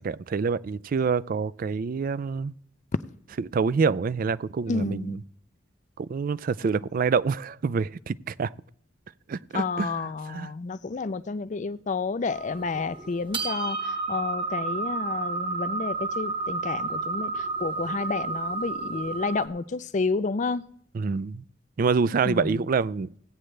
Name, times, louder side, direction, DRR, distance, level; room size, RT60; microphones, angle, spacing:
voice 1, 0.0-2.5 3.4-5.2 6.0-8.5 9.3-10.5 20.9-21.4 21.8-23.1, right 5 dB, 45° right, 0.3 m, -26 dB
voice 2, 4.7-5.2 9.5-20.6 22.2-22.6, left 4 dB, 40° left, 0.4 m, -30 dB
sound 1, 12.3-19.5, right 3 dB, 25° right, 1.0 m, -31 dB
16.5 x 8.9 x 3.3 m
head